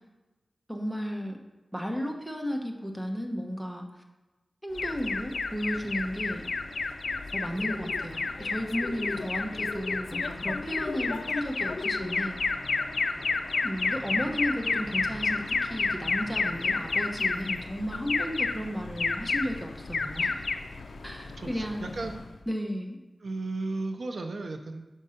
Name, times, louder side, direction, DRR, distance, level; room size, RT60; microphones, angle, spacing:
voice 1, 0.7-1.4 1.7-3.8 4.6-6.4 7.3-12.4 13.6-20.4 21.0-21.9 22.5-23.0, equal, 5° right, 2 dB, 1.0 m, -34 dB
Alarm, 4.8-22.4, left 4 dB, 85° left, 0.3 m, -31 dB
sound 1, 7.5-8.0 8.8-9.3 9.5-10.0 10.7-11.2 11.7-12.2, left 3 dB, 50° left, 0.6 m, -39 dB
voice 2, 21.4-22.2 23.2-24.9, right 3 dB, 70° right, 5 dB, 0.5 m, -35 dB
5.4 x 5.4 x 5.0 m, 1.1 s
wide cardioid pair, 70°, 0 cm